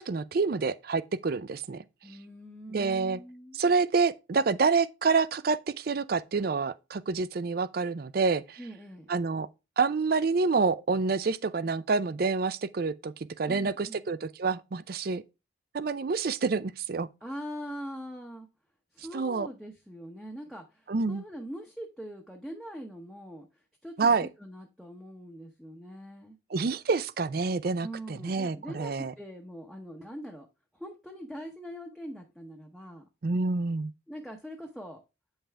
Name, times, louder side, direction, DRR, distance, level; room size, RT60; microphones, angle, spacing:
voice 1, 0.0-1.8 2.7-3.2 3.5-8.6 9.1-9.5 9.8-15.2 15.7-17.1 19.1-19.5 20.9-21.2 24.0-24.3 26.5-29.1 33.2-33.9, right 4 dB, 50° right, 0.4 m, -27 dB
voice 2, 2.0-3.6 8.6-9.1 13.5-14.1 17.2-18.5 18.9-26.4 27.8-30.5 30.7-33.0 34.1-35.0, equal, ahead, 0.8 m, -42 dB
8.6 x 5.6 x 3.4 m
head